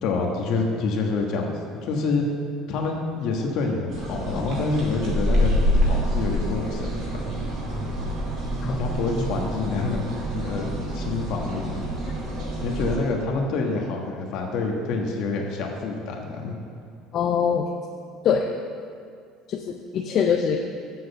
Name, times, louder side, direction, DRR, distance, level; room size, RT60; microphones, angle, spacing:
voice 1, 0.0-1.5 1.8-2.2 2.7-7.5 8.7-10.1 10.3-11.8 12.6-16.5, left 3 dB, 60° left, 1 dB, 1.3 m, -27 dB
sound 1, 3.9-13.0, equal, 55° right, 2.3 m, -26 dB
voice 2, 17.1-17.7 18.2-18.5 19.5-20.6, left 7 dB, 45° left, 3 dB, 0.5 m, -23 dB
7.7 x 6.1 x 6.8 m, 2.3 s
cardioid pair, 145°, 0 cm